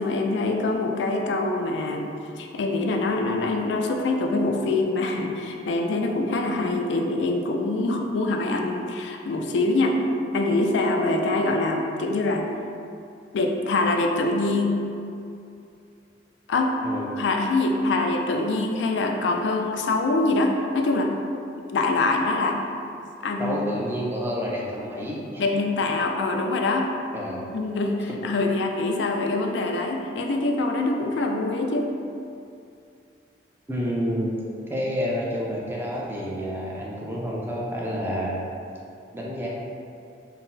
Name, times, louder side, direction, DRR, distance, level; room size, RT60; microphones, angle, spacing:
voice 1, 0.0-10.0 10.3-12.4 13.3-14.7 16.5-16.8 17.2-21.1 21.7-22.6 23.2-23.7 25.4-26.9 27.5-31.9, left 2 dB, 85° left, 3 dB, 0.4 m, -24 dB
voice 2, 23.4-25.4 27.1-27.5 33.7-34.3 34.7-38.4 39.1-39.5, equal, 15° right, -4 dB, 0.5 m, -29 dB
3.9 x 2.0 x 4.0 m, 2.6 s
head